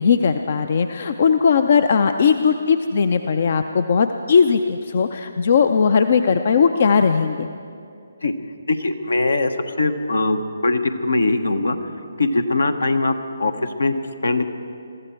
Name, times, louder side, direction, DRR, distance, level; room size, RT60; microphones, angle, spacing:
voice 1, 0.0-7.5, left 6 dB, 50° left, 9 dB, 0.5 m, -18 dB
voice 2, 8.7-11.8 12.2-13.9 14.2-14.5, left 2 dB, 75° left, 8 dB, 1.2 m, -21 dB
22.0 x 14.0 x 4.6 m, 2.4 s
figure-of-eight pair, 145°, 0 cm